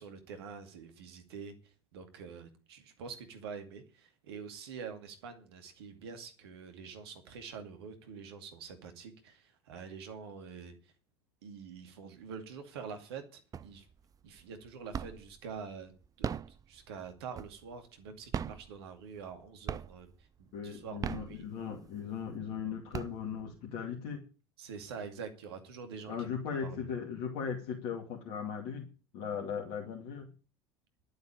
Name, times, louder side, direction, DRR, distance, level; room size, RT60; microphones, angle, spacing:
voice 1, 0.0-10.8 11.4-13.9 14.2-15.9 16.2-20.1 20.4-21.4 24.6-26.3 26.6-26.9, right 6 dB, 65° right, 2.4 m, -46 dB
sound 1, 13.5-14.0 14.4-15.4 16.0-17.8 18.2-19.4 19.7-20.2 20.8-21.9 22.4-22.5 22.7-23.6, right 7 dB, 25° right, 0.6 m, -38 dB
voice 2, 20.5-24.2 26.1-28.9 29.1-30.3, left 7 dB, 55° left, 2.5 m, -38 dB
11.5 x 8.0 x 8.8 m
figure-of-eight pair, 70°, 14 cm